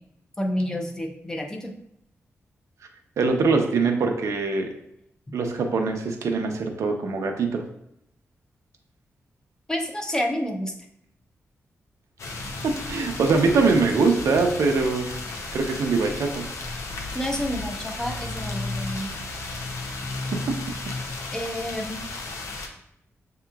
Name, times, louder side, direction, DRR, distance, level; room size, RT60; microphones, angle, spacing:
voice 1, 0.4-1.7 9.7-10.7 17.1-19.1 21.3-22.0, equal, 15° left, 2 dB, 0.4 m, -29 dB
voice 2, 3.2-4.7 5.3-7.6 12.6-15.1 15.5-16.4, right 4 dB, 85° right, 3 dB, 0.6 m, -23 dB
sound 1, 12.2-22.7, left 2 dB, 85° left, 0.6 m, -34 dB
6.7 x 2.9 x 2.3 m, 0.77 s
wide cardioid pair, 180°, 5 cm